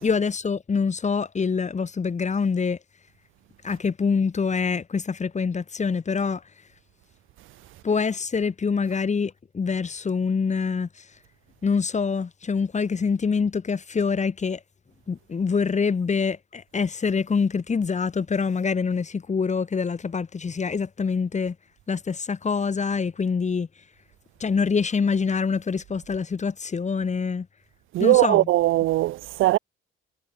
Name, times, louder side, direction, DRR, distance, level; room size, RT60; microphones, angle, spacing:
voice 1, 0.0-2.8 3.6-6.4 7.8-10.9 11.6-14.6 15.1-21.6 21.9-23.7 24.4-27.5 28.0-28.5, left 5 dB, 35° left, 3.9 m, -25 dB
voice 2, 27.9-29.6, right 16 dB, 90° right, 2.2 m, -20 dB
cardioid pair, 90°, 20 cm